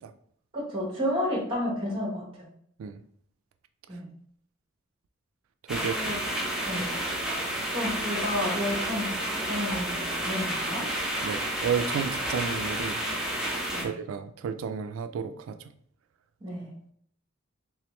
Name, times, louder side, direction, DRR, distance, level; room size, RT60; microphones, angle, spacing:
voice 1, 0.5-2.4 3.9-4.1 5.7-6.2 6.7-6.9 7.7-10.9 13.7-13.9 16.4-16.7, left 1 dB, 25° right, 1.2 m, -31 dB
sound 1, 5.7-13.8, right 1 dB, 5° right, 0.8 m, -30 dB
voice 2, 5.7-6.1 11.2-13.0 13.8-15.6, right 6 dB, 90° right, 0.3 m, -32 dB
3.7 x 3.0 x 3.0 m
head